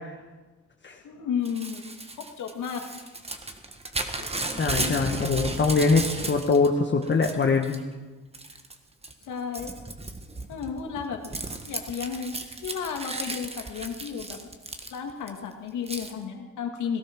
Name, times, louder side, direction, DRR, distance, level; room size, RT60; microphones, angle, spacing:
voice 1, 1.0-1.8 2.2-3.1 4.2-4.3 4.8-5.2 9.2-9.7 10.5-11.2 11.7-12.3 12.6-14.4 14.9-17.0, left 7 dB, 80° left, 3 dB, 2.3 m, -33 dB
Crumpling crinkling / Tearing, 1.4-6.7 7.0-7.8 8.3-8.7 9.0-15.3 15.9-16.1, right 2 dB, 20° right, 1.5 m, -34 dB
voice 2, 4.6-7.8, left 4 dB, 35° left, 3 dB, 1.3 m, -23 dB
18.0 x 12.5 x 6.1 m, 1.3 s
cardioid pair, 90°, 30 cm